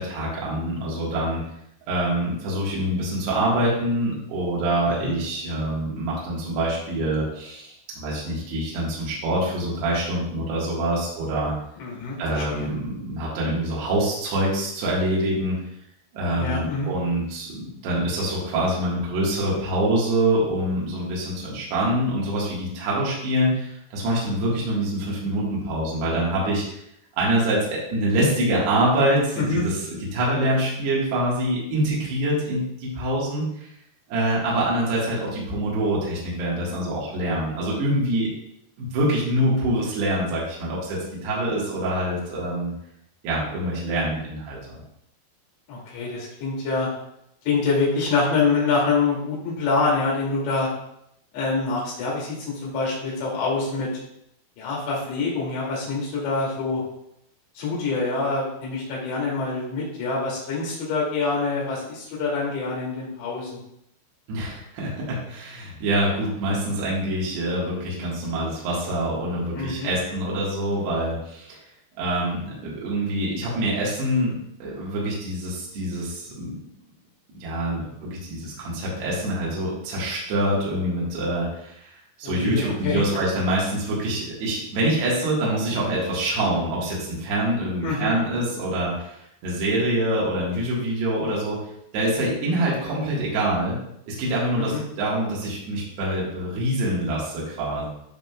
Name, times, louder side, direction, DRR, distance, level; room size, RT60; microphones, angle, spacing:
voice 1, 0.0-1.4 1.9-11.5 12.2-15.6 16.1-26.8 27.2-33.7 34.1-38.3 38.8-42.7 43.2-44.8 64.3-71.6 72.0-74.3 74.6-76.5 77.4-91.6 91.9-93.8 94.1-97.9, right 1 dB, 65° right, -5 dB, 3.6 m, -25 dB
voice 2, 11.8-12.7 16.3-16.9 29.4-29.6 45.7-46.9 47.4-50.7 51.3-53.9 54.6-56.8 57.6-63.6 69.5-69.9 82.2-83.0 87.8-88.1 94.6-94.8, left 4 dB, 70° left, -5 dB, 4.8 m, -25 dB
12.0 x 5.0 x 2.4 m, 0.77 s
omnidirectional pair, 5.3 m